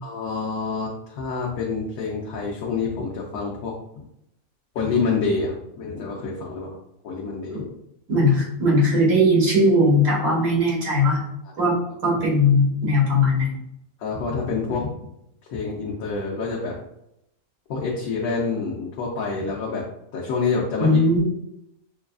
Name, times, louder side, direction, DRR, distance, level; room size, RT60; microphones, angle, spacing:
voice 1, 0.0-3.8 4.7-6.8 7.0-7.7 11.4-11.7 12.0-12.2 14.0-14.9 15.5-16.8 17.7-19.9 20.1-21.0, left 4 dB, 85° left, -4 dB, 1.2 m, -27 dB
voice 2, 8.1-11.2 11.6-11.7 12.0-13.5 20.8-21.3, left 1 dB, 75° right, -5 dB, 1.8 m, -19 dB
6.0 x 2.4 x 2.3 m, 0.80 s
omnidirectional pair, 1.5 m